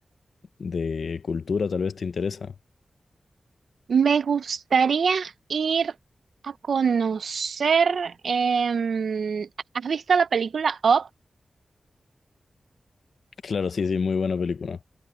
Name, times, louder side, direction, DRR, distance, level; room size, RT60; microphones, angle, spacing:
voice 1, 0.6-2.5 13.4-14.8, left 5 dB, 75° left, 0.6 m, -27 dB
voice 2, 3.9-5.9 6.4-9.5 9.7-11.1, right 6 dB, 85° right, 0.7 m, -23 dB
wide cardioid pair, 100°, 0 cm